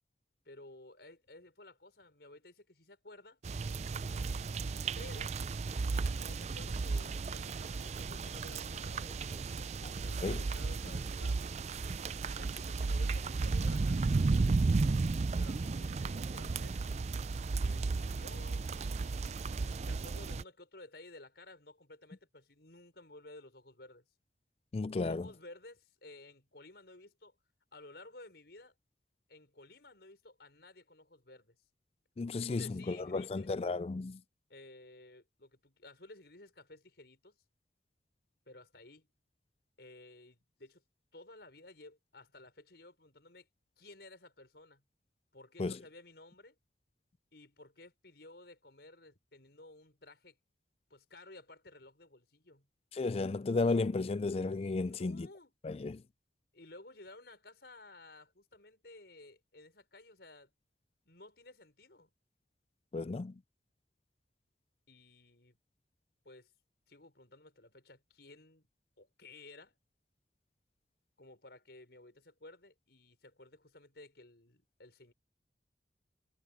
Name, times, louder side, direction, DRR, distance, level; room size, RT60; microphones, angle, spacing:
voice 1, 0.5-3.4 5.0-5.4 6.2-11.5 12.4-14.1 15.4-16.8 17.6-19.2 19.8-24.0 25.1-27.4 27.7-28.7 29.3-31.6 32.3-33.5 34.5-37.4 38.5-39.1 39.8-40.8 41.1-43.5 43.8-44.8 45.3-46.6 47.3-50.4 50.9-52.7 54.9-55.5 56.5-60.5 61.1-62.1 64.9-65.6 66.2-66.5 66.9-68.7 69.0-69.7 71.2-75.1, left 2 dB, 65° left, 5.2 m, -55 dB
sound 1, 3.4-20.4, right 3 dB, 40° right, 0.4 m, -34 dB
voice 2, 24.7-25.3 32.2-34.2 45.6-45.8 52.9-55.3 55.6-56.0 62.9-63.4, left 3 dB, 35° left, 0.3 m, -33 dB
head